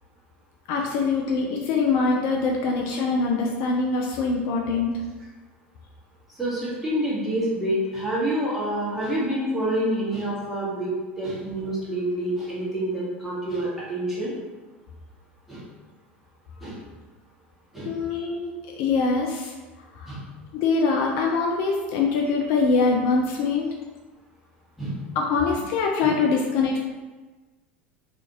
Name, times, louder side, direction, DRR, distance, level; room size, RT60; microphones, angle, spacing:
voice 1, 0.7-4.9 17.9-18.5 18.8-19.5 20.0-20.2 20.5-23.7 25.2-26.9, left 4 dB, 50° left, 0 dB, 0.3 m, -23 dB
voice 2, 6.3-10.9 11.2-14.3 15.5-15.6 16.6-16.8 17.7-17.9 20.1-20.2 24.8-25.1 26.0-26.1, right 1 dB, 5° right, -8 dB, 1.1 m, -27 dB
2.4 x 2.4 x 2.9 m, 1.3 s
figure-of-eight pair, 75°, 6 cm